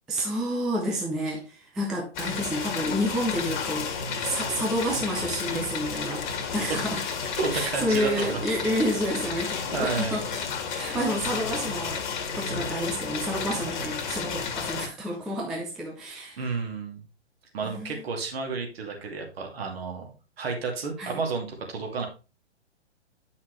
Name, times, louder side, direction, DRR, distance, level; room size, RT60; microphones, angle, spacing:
voice 1, 0.1-3.9 4.2-7.0 7.5-10.3 10.6-12.0 12.4-16.4 17.6-18.0 21.0-21.2, equal, ahead, 0.3 m, -29 dB
sound 1, 2.1-14.9, left 6 dB, 45° left, 1.7 m, -32 dB
voice 2, 7.4-8.4 9.7-10.1 16.4-17.0 17.5-20.1 20.4-22.1, right 4 dB, 60° right, 2.5 m, -31 dB
8.5 x 5.7 x 3.1 m
figure-of-eight pair, 120°, 34 cm